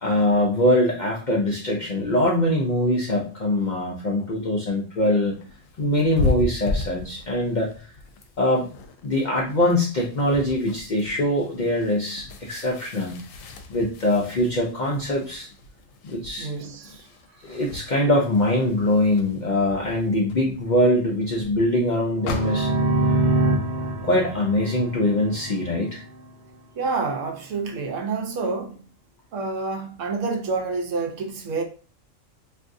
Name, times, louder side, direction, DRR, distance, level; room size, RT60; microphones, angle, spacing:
voice 1, 0.0-5.4 5.8-7.7 8.4-8.7 9.0-13.2 13.7-15.5 16.0-16.5 17.4-22.7 24.0-26.0, left 1 dB, 55° left, 0.5 m, -23 dB
sound 1, 5.2-22.9, left 3 dB, 80° left, 0.9 m, -35 dB
voice 2, 16.4-17.6 26.7-28.8 29.3-31.6, right 4 dB, 75° right, 0.9 m, -28 dB
sound 2, 22.2-25.9, right 2 dB, 55° right, 0.5 m, -24 dB
3.5 x 2.6 x 2.5 m
omnidirectional pair, 1.4 m